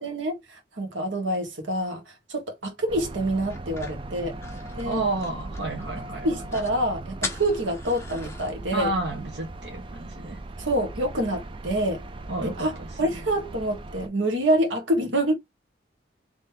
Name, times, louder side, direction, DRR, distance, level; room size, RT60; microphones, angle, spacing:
voice 1, 0.0-4.4 4.7-5.0 5.9-8.9 10.6-12.1 12.4-15.3, right 1 dB, 85° right, 1.6 m, -27 dB
sound 1, 2.9-14.1, right 2 dB, 25° right, 0.3 m, -39 dB
sound 2, 3.5-5.9 6.2-6.3 6.5-6.8 7.2-8.5, left 4 dB, 15° left, 0.7 m, -38 dB
voice 2, 4.8-6.3 8.7-10.4 12.3-12.9, right 2 dB, 65° right, 1.2 m, -30 dB
3.9 x 3.1 x 2.7 m
head